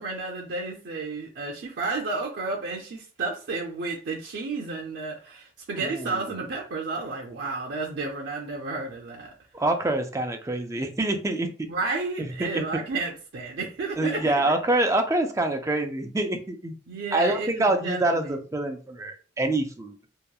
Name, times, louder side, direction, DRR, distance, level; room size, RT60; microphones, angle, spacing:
voice 1, 0.0-9.3 11.7-14.5 16.9-18.4, right 3 dB, 80° right, 0.5 m, -32 dB
voice 2, 5.8-6.4 9.5-11.5 12.2-12.7 14.0-16.7 17.1-20.0, right 2 dB, 15° right, 0.3 m, -26 dB
2.9 x 2.1 x 2.3 m
head